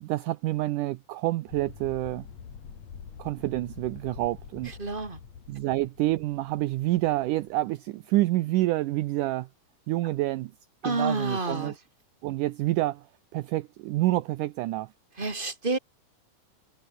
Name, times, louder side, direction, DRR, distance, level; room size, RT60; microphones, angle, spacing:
voice 1, 0.0-2.3 3.2-4.7 5.5-9.5 9.9-10.5 10.8-11.8 12.2-13.1 13.3-14.9, right 17 dB, 75° right, 2.1 m, -28 dB
sound 1, 1.5-7.7, left 7 dB, 50° left, 3.7 m, -46 dB
voice 2, 4.7-5.2 10.8-11.7 15.2-15.8, right 3 dB, 15° right, 3.6 m, -29 dB
omnidirectional pair, 4.0 m